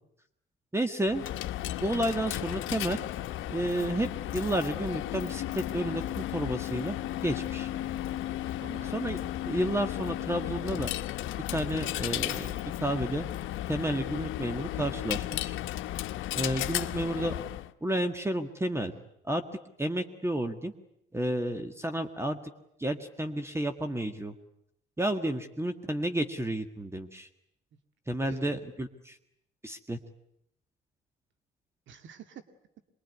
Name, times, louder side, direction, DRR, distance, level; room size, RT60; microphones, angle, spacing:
voice 1, 0.7-1.2 1.8-3.0 3.5-7.0 7.2-7.7 8.9-9.2 9.5-10.9 11.5-13.3 13.7-15.6 16.3-17.4 17.8-18.9 19.2-19.4 19.8-20.7 21.1-22.4 22.8-24.3 25.0-27.3 28.1-29.2 29.6-30.0, right 1 dB, 15° right, 7 dB, 1.7 m, -31 dB
Coin (dropping), 1.1-17.7, left 13 dB, 85° left, 1.0 m, -34 dB
voice 2, 7.7-8.3 8.6-9.0 18.9-19.1 28.3-28.7 31.9-32.4, right 7 dB, 70° right, 8 dB, 2.2 m, -49 dB
24.5 x 22.0 x 9.5 m, 0.77 s
cardioid pair, 90°, 20 cm